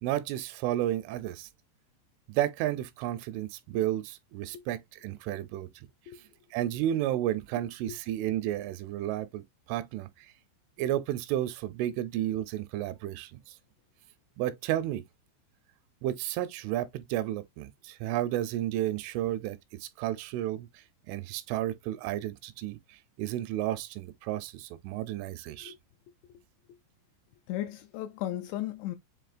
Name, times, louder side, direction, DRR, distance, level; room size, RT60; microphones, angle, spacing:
voice 1, 0.0-1.5 2.3-5.9 6.5-10.3 10.8-13.6 14.4-15.0 16.0-25.7, right 13 dB, 85° right, 3.0 m, -32 dB
voice 2, 27.5-29.0, left 13 dB, 85° left, 2.5 m, -35 dB
7.8 x 2.6 x 2.4 m
omnidirectional pair, 5.6 m